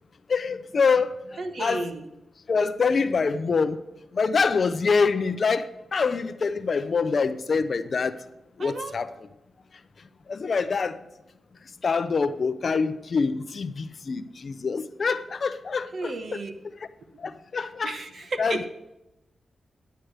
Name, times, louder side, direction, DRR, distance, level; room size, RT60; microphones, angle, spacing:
voice 1, 0.3-1.1 1.6-1.8 2.5-3.8 4.1-8.1 8.6-9.1 10.3-11.0 11.8-16.4 17.2-17.9 18.4-18.7, left 5 dB, 50° left, 11 dB, 0.6 m, -25 dB
voice 2, 1.4-2.1 8.6-9.0 15.9-16.5 17.2-18.7, right 3 dB, 55° right, 7 dB, 1.0 m, -34 dB
10.0 x 8.1 x 4.7 m, 0.95 s
wide cardioid pair, 125°, 0 cm